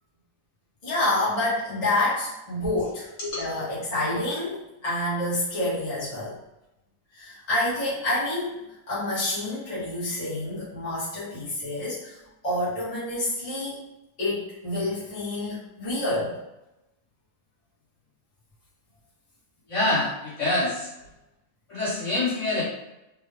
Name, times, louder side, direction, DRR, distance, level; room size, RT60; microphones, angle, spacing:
voice 1, 0.8-3.1 3.4-6.4 7.1-12.2 12.4-13.8 14.2-16.4, left 1 dB, 25° left, -10 dB, 1.3 m, -28 dB
voice 2, 19.7-20.9 21.7-22.6, left 2 dB, 50° left, -9 dB, 1.9 m, -26 dB
3.6 x 2.4 x 3.3 m, 0.95 s
omnidirectional pair, 1.7 m